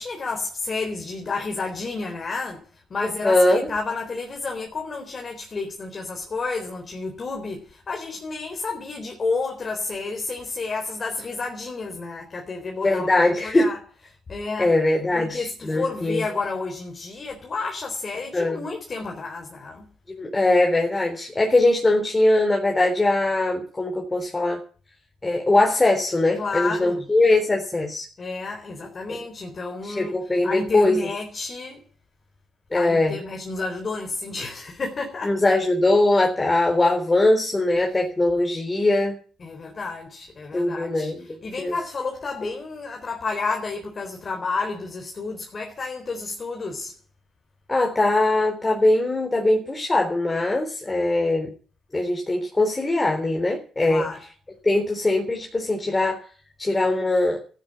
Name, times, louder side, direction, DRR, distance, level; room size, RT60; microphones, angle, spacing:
voice 1, 0.0-13.8 14.3-14.8 15.1-19.9 26.4-27.1 28.2-31.8 32.7-35.4 39.4-46.9 53.9-54.3, left 3 dB, 40° left, 4.0 m, -31 dB
voice 2, 3.2-3.7 12.8-13.7 14.6-16.2 18.3-18.6 20.1-24.6 25.2-28.1 29.8-31.0 32.7-33.1 35.2-39.1 40.5-41.2 41.6-41.7 47.7-51.5 51.9-54.1 54.6-56.2 56.6-57.4, left 2 dB, 20° left, 3.9 m, -21 dB
15.0 x 10.5 x 8.9 m
cardioid pair, 90°, 0 cm